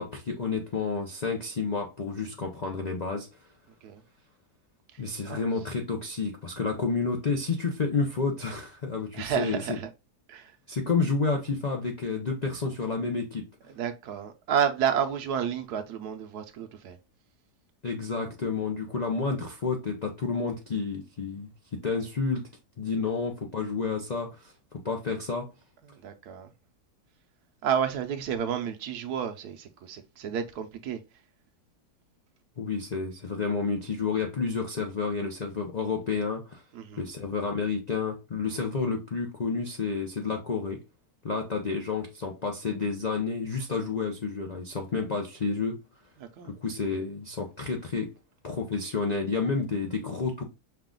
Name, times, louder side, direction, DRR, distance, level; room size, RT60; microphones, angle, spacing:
voice 1, 0.0-3.3 5.0-9.8 10.7-13.5 17.8-22.5 22.8-24.5 24.8-25.5 32.6-36.6 37.0-40.8 41.2-45.8 46.5-48.1 48.4-50.4, left 4 dB, 70° left, 0.4 m, -30 dB
voice 2, 9.1-9.9 10.3-10.5 13.8-17.0 26.0-26.5 27.6-31.0 36.7-37.0 46.4-46.5, right 8 dB, 75° right, 1.2 m, -30 dB
5.6 x 2.4 x 3.7 m
omnidirectional pair, 1.8 m